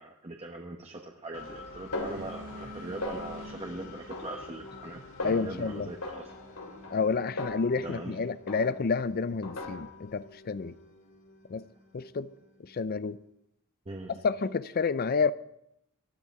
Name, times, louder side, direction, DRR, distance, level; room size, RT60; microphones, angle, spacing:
voice 1, 0.0-6.2 7.8-8.2 13.9-14.1, right 2 dB, 30° right, 1.2 m, -41 dB
sound 1, 1.3-13.1, left 2 dB, 60° left, 3.0 m, -49 dB
Snare drum, 1.9-2.7 3.0-3.6 4.1-4.9 5.2-5.6 6.0-8.1 8.5-9.0 9.4-10.1, left 2 dB, 85° left, 2.9 m, -39 dB
Boat Water vehicle, 1.9-5.1, equal, 55° right, 4.5 m, -47 dB
voice 2, 5.2-5.9 6.9-10.8 11.5-11.7 11.9-12.3 12.6-13.2 14.1-15.3, left 5 dB, 45° left, 0.5 m, -29 dB
20.0 x 13.0 x 4.8 m
head